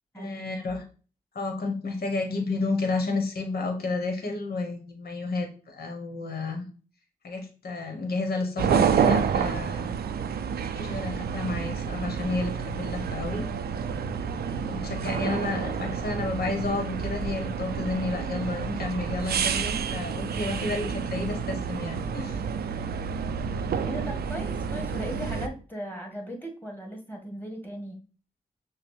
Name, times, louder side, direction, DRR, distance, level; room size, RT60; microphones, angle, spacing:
voice 1, 0.2-0.9 1.3-6.6 7.2-9.9 10.8-13.5 14.6-22.4, left 3 dB, 75° left, 4 dB, 1.1 m, -31 dB
sound 1, 8.6-25.5, right 7 dB, 80° right, 0.4 m, -29 dB
voice 2, 23.9-27.9, equal, 10° left, 1 dB, 1.7 m, -37 dB
5.7 x 2.1 x 3.2 m, 0.37 s
cardioid pair, 40°, 16 cm